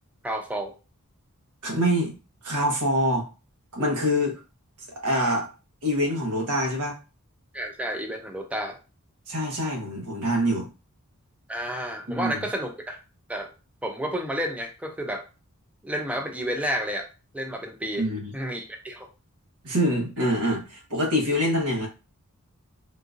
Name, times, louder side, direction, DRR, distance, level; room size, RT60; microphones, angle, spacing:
voice 1, 0.2-0.7 7.5-8.8 11.5-13.0 13.3-13.5 13.8-15.2 15.8-17.1 17.3-18.1 18.3-19.1, equal, 5° right, 3 dB, 0.4 m, -31 dB
voice 2, 1.6-2.1 2.4-3.3 3.7-4.4 5.0-5.5 5.8-7.0 9.3-10.7 12.1-12.4 18.0-18.3 19.6-21.9, equal, 90° right, 1 dB, 1.1 m, -25 dB
3.8 x 2.5 x 2.4 m, 0.31 s
head